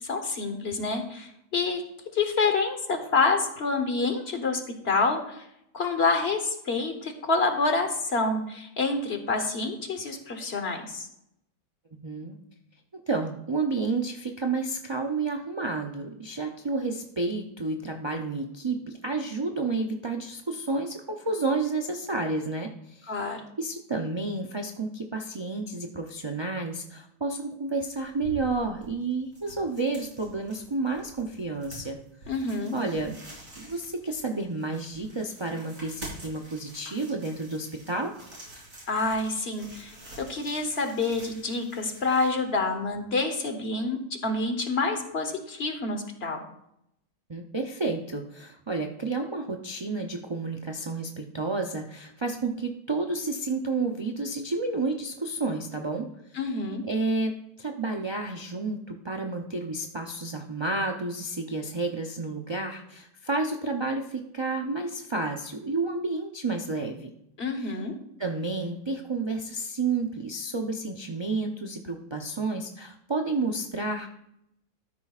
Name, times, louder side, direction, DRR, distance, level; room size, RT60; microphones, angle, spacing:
voice 1, 0.0-1.8 2.1-5.4 5.7-11.1 23.1-23.4 32.3-32.8 38.9-44.0 44.2-46.4 56.3-56.8 67.4-67.9, left 3 dB, 45° left, 6 dB, 1.2 m, -27 dB
voice 2, 12.0-12.4 12.9-23.2 23.6-32.0 32.7-33.2 33.6-38.1 47.3-56.1 56.9-67.1 67.6-67.8 68.2-74.1, right 3 dB, 45° right, 1 dB, 0.3 m, -30 dB
sound 1, 27.8-43.0, right 1 dB, 60° right, 4.5 m, -48 dB
13.0 x 9.8 x 2.4 m, 0.79 s
omnidirectional pair, 1.6 m